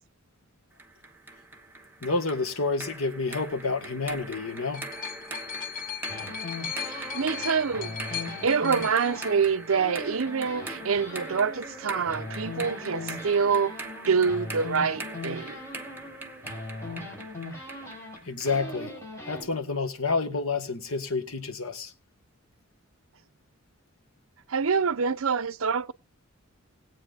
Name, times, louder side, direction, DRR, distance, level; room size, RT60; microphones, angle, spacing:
sound 1, 0.8-18.6, right 2 dB, 10° right, 1.2 m, -42 dB
voice 1, 2.0-4.9 18.2-18.9 19.3-21.9, left 3 dB, 75° left, 1.6 m, -29 dB
sound 2, 4.2-10.1 11.0-11.1, left 8 dB, 45° left, 1.8 m, -38 dB
sound 3, 6.1-9.5 9.7-19.4, left 2 dB, 15° left, 4.9 m, -40 dB
voice 2, 6.8-13.8 14.1-15.6 24.5-25.9, right 5 dB, 70° right, 0.7 m, -26 dB
20.5 x 8.7 x 2.5 m
head